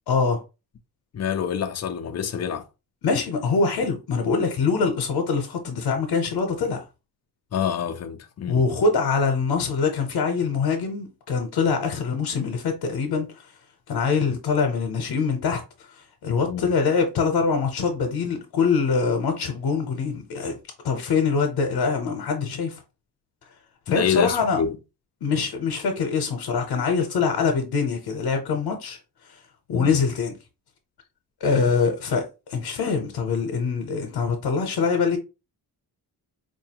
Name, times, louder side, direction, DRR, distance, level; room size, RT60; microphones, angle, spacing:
voice 1, 0.1-0.4 3.0-6.8 8.5-13.3 13.9-15.6 15.9-20.6 20.8-22.8 23.9-24.6 25.2-29.0 29.2-29.4 29.7-30.3 31.4-35.2, left 5 dB, 85° left, 0.9 m, -24 dB
voice 2, 1.1-2.7 7.5-8.7 16.4-16.7 23.9-24.8 29.7-30.0, left 8 dB, 45° left, 0.5 m, -27 dB
4.5 x 2.6 x 2.9 m
wide cardioid pair, 160°, 38 cm